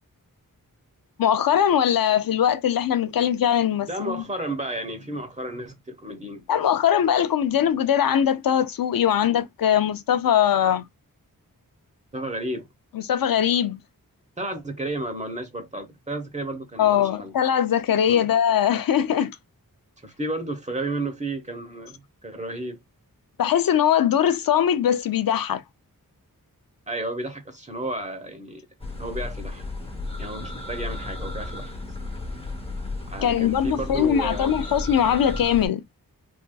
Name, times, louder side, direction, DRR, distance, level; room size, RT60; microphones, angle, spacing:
voice 1, 1.2-4.2 6.5-10.9 12.9-13.8 16.8-19.4 23.4-25.6 33.2-35.8, left 9 dB, 75° left, 0.5 m, -21 dB
voice 2, 3.9-6.5 12.1-12.7 14.4-17.3 18.1-18.3 20.0-22.8 26.9-28.6 29.0-29.6 30.2-31.7 33.1-34.6, right 1 dB, 20° right, 1.0 m, -32 dB
sound 1, 28.8-35.7, left 2 dB, 15° left, 1.0 m, -34 dB
3.5 x 2.6 x 2.2 m
wide cardioid pair, 90°, 35 cm